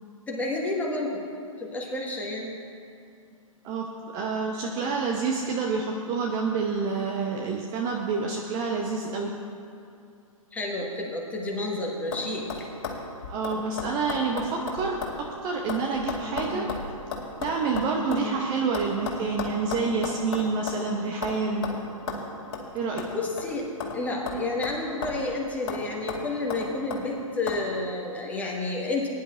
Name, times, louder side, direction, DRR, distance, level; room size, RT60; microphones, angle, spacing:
voice 1, 0.3-1.2 1.6-2.5 10.5-12.4 16.5-16.8 18.2-18.5 23.1-23.6 23.9-29.1, left 2 dB, 10° left, -2 dB, 1.5 m, -30 dB
voice 2, 3.6-9.3 13.3-16.7 17.4-21.7 22.7-23.1, right 4 dB, 25° right, 1 dB, 0.7 m, -28 dB
sound 1, 11.3-11.7 12.1-12.2 12.5-15.2 15.5-18.3 18.7-20.9 21.2-21.4 21.6-21.8 22.1-22.2 22.5-22.7 23.0-24.0 24.3-25.3 25.7-25.8 26.1-27.0 27.5-27.6, left 4 dB, 45° left, 2.4 m, -34 dB
20.5 x 10.5 x 2.5 m, 2.4 s
figure-of-eight pair, 120°, 18 cm